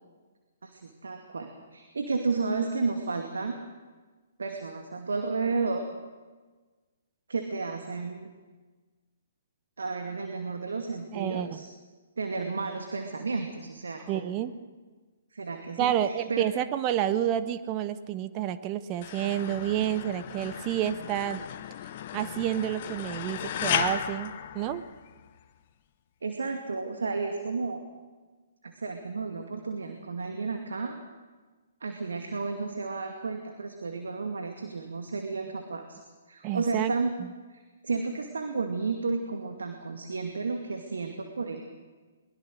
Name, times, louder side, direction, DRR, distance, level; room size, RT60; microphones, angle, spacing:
voice 1, 0.6-3.6 4.4-5.9 7.3-8.3 9.8-11.7 12.2-14.4 15.3-16.5 26.2-27.9 28.6-31.0 31.8-36.0 36.3-37.1 37.5-41.6, right 4 dB, 70° right, 4 dB, 2.3 m, -32 dB
voice 2, 11.1-11.5 14.1-14.5 15.8-21.5 22.1-24.8 36.4-36.9, right 11 dB, 30° right, 12 dB, 1.0 m, -29 dB
sound 1, 19.0-25.3, left 10 dB, 40° left, 1.2 m, -35 dB
22.5 x 21.5 x 6.5 m, 1.3 s
figure-of-eight pair, 125°, 0 cm